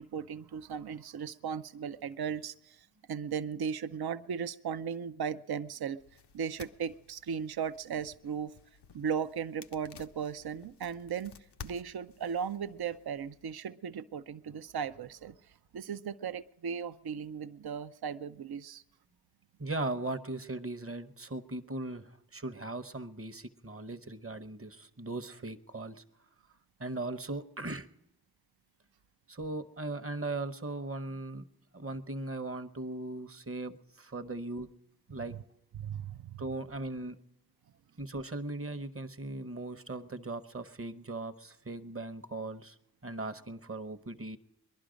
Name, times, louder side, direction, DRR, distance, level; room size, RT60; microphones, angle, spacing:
voice 1, 0.0-6.0 6.3-8.5 8.9-11.3 11.6-18.8 35.3-35.4 35.7-36.4, right 7 dB, 70° right, 13 dB, 0.5 m, -37 dB
sound 1, 6.0-13.5, left 7 dB, 85° left, 0.6 m, -54 dB
voice 2, 19.6-26.0 26.8-27.9 29.3-31.4 31.7-34.7 35.1-35.3 36.4-37.2 38.0-42.8 43.0-44.4, right 2 dB, 35° right, 10 dB, 0.9 m, -38 dB
21.5 x 11.5 x 5.1 m, 0.82 s
wide cardioid pair, 50°, 40 cm